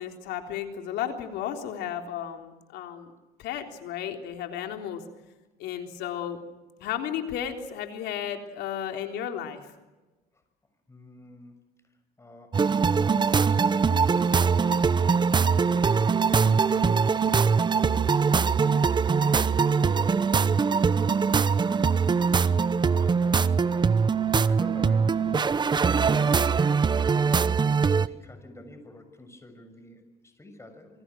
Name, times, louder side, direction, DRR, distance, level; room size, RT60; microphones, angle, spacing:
voice 1, 0.0-3.1 3.4-5.0 5.6-6.4 6.8-9.6, left 9 dB, 85° left, 4 dB, 3.7 m, -33 dB
voice 2, 10.9-11.6 12.2-15.1 15.4-16.1 16.3-17.6 17.9-18.4 19.2-20.9 22.8-24.0 24.5-26.5 27.0-31.0, left 2 dB, 15° left, 8 dB, 6.5 m, -48 dB
sound 1, 12.5-28.1, right 5 dB, 25° right, 0.8 m, -22 dB
27.0 x 24.0 x 6.3 m, 1.1 s
cardioid pair, 110°, 17 cm